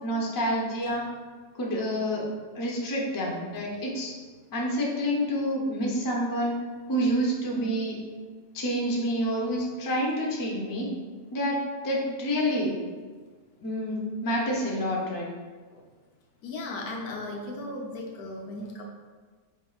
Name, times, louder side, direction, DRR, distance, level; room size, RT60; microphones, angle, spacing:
voice 1, 0.0-1.0 1.5-2.2 2.5-4.1 4.5-6.5 6.9-8.0 8.5-10.9 11.3-11.6 11.8-12.7 13.6-15.3, equal, 30° left, -3 dB, 0.3 m, -28 dB
voice 2, 16.4-18.8, left 2 dB, 85° left, 0 dB, 1.3 m, -36 dB
4.9 x 3.5 x 2.3 m, 1.4 s
omnidirectional pair, 1.6 m